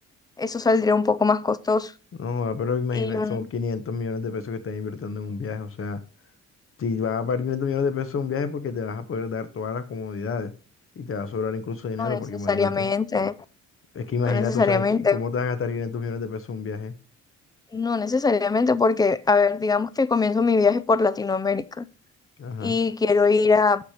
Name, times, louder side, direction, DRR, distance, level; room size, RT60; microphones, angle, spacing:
voice 1, 0.4-1.9 2.9-3.4 12.0-12.2 12.5-13.4 14.2-15.2 17.7-21.9 22.6-23.8, left 4 dB, 15° left, 0.4 m, -22 dB
voice 2, 2.2-6.0 6.8-10.5 11.0-12.9 13.9-16.9 22.4-22.8, left 5 dB, 45° left, 1.0 m, -29 dB
5.9 x 5.9 x 4.9 m
cardioid pair, 90°, 30 cm